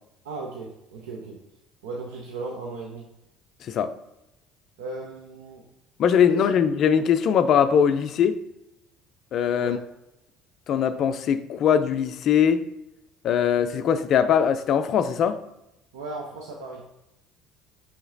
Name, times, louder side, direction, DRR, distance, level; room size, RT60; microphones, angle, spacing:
voice 1, 0.2-1.4 1.8-3.1 4.8-5.7 6.3-6.4 9.6-9.8 15.9-16.9, right 3 dB, 85° right, 0.5 m, -36 dB
voice 2, 3.6-3.9 6.0-8.4 9.3-9.8 10.7-12.6 13.2-15.4, left 8 dB, 55° left, 0.3 m, -21 dB
5.6 x 2.8 x 2.6 m
hypercardioid pair, 65°, 0 cm